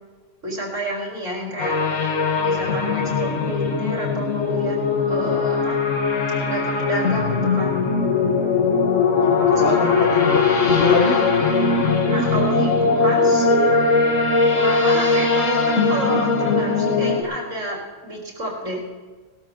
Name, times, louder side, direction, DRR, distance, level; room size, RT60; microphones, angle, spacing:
voice 1, 0.4-1.7 2.4-4.8 5.1-5.8 6.4-7.8 9.5-9.8 12.0-13.7 14.5-18.8, right 1 dB, 80° right, -3 dB, 4.0 m, -29 dB
sound 1, 1.6-17.2, left 4 dB, 85° left, 1.8 m, -20 dB
voice 2, 9.1-11.3, left 4 dB, 50° left, 4 dB, 1.7 m, -23 dB
19.5 x 13.0 x 3.8 m, 1.4 s
omnidirectional pair, 1.3 m